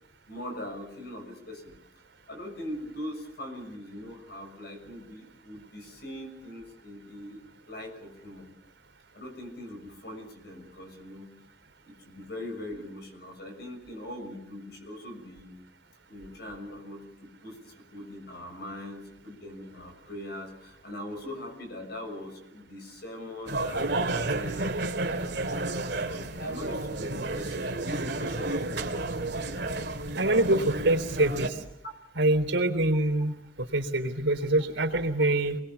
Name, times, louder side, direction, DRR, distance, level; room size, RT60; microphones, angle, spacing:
voice 1, 0.3-1.7 2.3-7.4 7.7-8.5 9.1-11.3 11.8-15.6 16.1-24.7 25.2-29.2, left 1 dB, 55° left, 5 dB, 6.6 m, -41 dB
sound 1, 23.5-31.5, right 2 dB, 65° right, 2.5 m, -31 dB
voice 2, 30.2-31.6 32.1-35.6, right 2 dB, 90° right, 5 dB, 3.6 m, -25 dB
28.0 x 21.0 x 7.1 m, 0.83 s
head